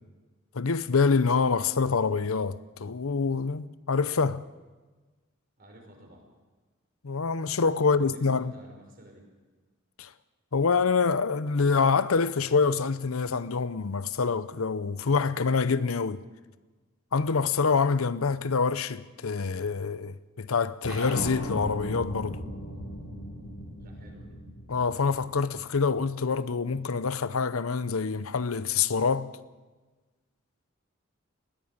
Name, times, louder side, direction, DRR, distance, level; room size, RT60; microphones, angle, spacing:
voice 1, 0.5-4.4 7.0-8.5 10.0-10.1 10.5-16.2 17.1-22.4 24.7-29.3, left 5 dB, 85° left, 0.7 m, -26 dB
voice 2, 5.6-6.3 8.0-9.3 23.8-24.4, equal, 45° right, 5.7 m, -51 dB
sound 1, 20.8-25.6, equal, 65° left, 7.8 m, -37 dB
20.0 x 16.5 x 8.8 m
head